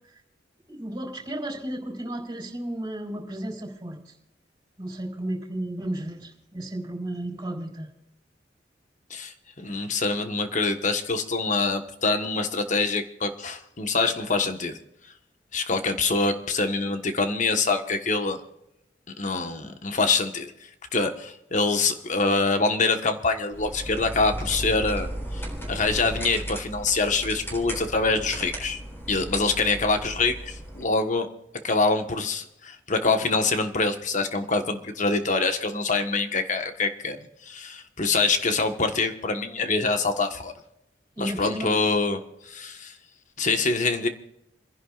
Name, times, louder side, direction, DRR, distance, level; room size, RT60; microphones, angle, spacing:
voice 1, 0.7-4.1 4.8-7.9 41.1-41.8, right 1 dB, 20° right, -1 dB, 4.1 m, -33 dB
voice 2, 9.1-14.8 15.5-18.4 19.2-20.5 20.9-28.8 29.1-31.3 31.6-40.5 41.2-42.9 43.4-44.1, left 3 dB, 45° left, 7 dB, 1.3 m, -25 dB
sound 1, 23.5-30.8, right 1 dB, 15° left, 3.8 m, -35 dB
30.0 x 11.0 x 2.5 m, 0.84 s
head